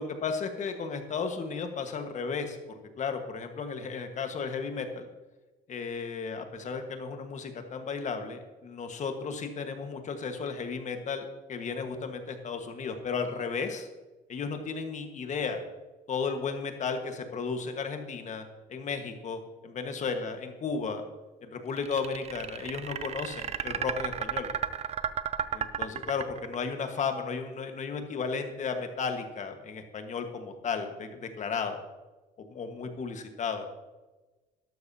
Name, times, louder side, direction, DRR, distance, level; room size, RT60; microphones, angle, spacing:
voice 1, 0.0-5.1 5.7-13.9 14.3-15.6 16.1-18.4 18.7-21.0 21.4-24.5 25.5-31.8 32.5-33.7, left 5 dB, 45° left, 6 dB, 1.5 m, -34 dB
sound 1, 21.8-26.8, right 8 dB, 40° right, 0.5 m, -33 dB
12.5 x 12.5 x 2.8 m, 1.2 s
cardioid pair, 110°, 17 cm